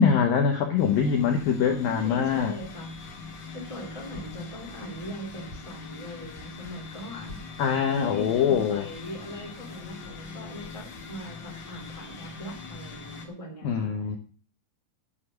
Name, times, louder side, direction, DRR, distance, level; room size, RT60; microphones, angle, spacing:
voice 1, 0.0-2.5 7.6-8.9 13.6-14.2, left 7 dB, 85° left, 4 dB, 2.0 m, -23 dB
sound 1, 0.8-13.3, left 4 dB, 50° left, 2.5 m, -42 dB
voice 2, 1.6-3.1 3.5-13.9, right 1 dB, 10° right, 0 dB, 1.6 m, -40 dB
11.0 x 7.3 x 6.5 m, 0.40 s
omnidirectional pair, 5.7 m